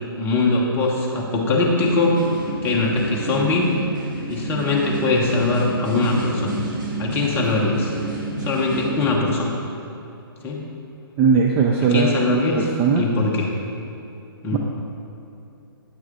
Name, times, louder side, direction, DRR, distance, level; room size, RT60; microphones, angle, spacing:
voice 1, 0.2-2.2 2.6-3.7 4.3-6.6 7.0-7.9 8.4-9.5 10.4-10.6 11.8-12.7 12.9-13.6 14.4-14.6, left 3 dB, 15° left, -2 dB, 1.0 m, -21 dB
sound 1, 1.8-9.1, right 2 dB, 50° right, 1.9 m, -30 dB
voice 2, 11.2-13.1 14.5-14.6, right 5 dB, 15° right, 0 dB, 0.4 m, -19 dB
9.5 x 6.2 x 3.8 m, 2.8 s
figure-of-eight pair, 130°, 13 cm